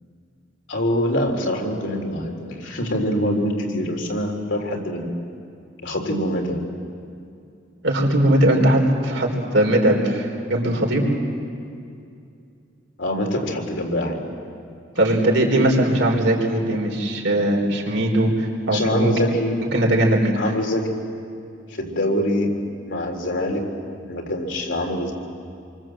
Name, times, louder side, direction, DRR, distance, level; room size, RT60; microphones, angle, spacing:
voice 1, 0.7-5.1 5.8-6.6 13.0-14.2 18.7-19.6 20.4-20.9 21.8-22.5 22.9-23.7 24.1-25.1, left 1 dB, 70° left, 1 dB, 3.7 m, -24 dB
voice 2, 7.8-11.1 15.0-18.3 18.7-19.1 19.7-20.4, right 1 dB, 70° right, 1 dB, 4.2 m, -19 dB
28.0 x 24.0 x 7.7 m, 2.5 s
head